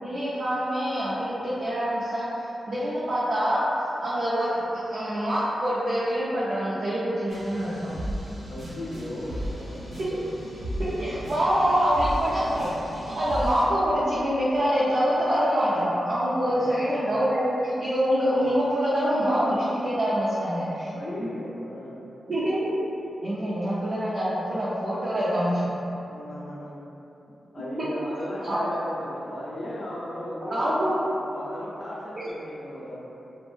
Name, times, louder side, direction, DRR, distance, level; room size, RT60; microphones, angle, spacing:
voice 1, 0.0-3.7 4.0-7.9 10.8-20.9 21.2-21.3 22.3-22.7 23.2-25.7 27.8-27.9 28.5-28.7 30.5-30.9 32.2-32.3, equal, 60° right, -10 dB, 0.5 m, -25 dB
sound 1, 7.3-13.6, equal, 80° right, 0.9 m, -35 dB
voice 2, 8.4-10.0 11.6-11.7 16.4-17.2 20.9-22.0 26.1-26.8 27.5-30.9 31.2-33.0, left 1 dB, 40° left, -8 dB, 0.4 m, -37 dB
2.5 x 2.1 x 3.1 m, 2.9 s
wide cardioid pair, 105°, 0 cm